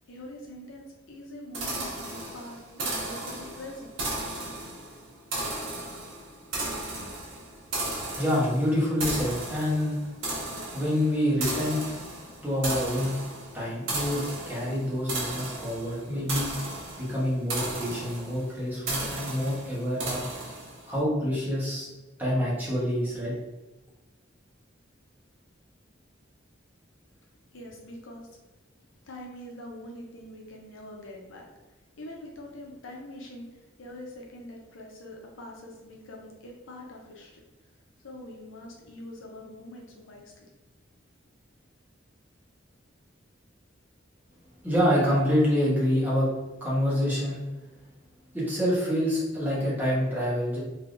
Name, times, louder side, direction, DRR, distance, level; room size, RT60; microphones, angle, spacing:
voice 1, 0.1-4.1 27.5-28.3 29.0-31.5 32.0-37.4 38.0-40.5, left 1 dB, 90° left, 0 dB, 0.7 m, -44 dB
sound 1, 1.5-20.9, right 2 dB, 90° right, 1.0 m, -35 dB
voice 2, 8.1-10.0 10.7-11.8 12.4-13.1 13.5-16.6 17.0-20.3 20.9-21.9 22.2-23.3 44.6-46.3 46.6-47.4 48.3-50.6, equal, 10° right, -7 dB, 1.0 m, -27 dB
3.4 x 2.7 x 2.5 m, 1.1 s
head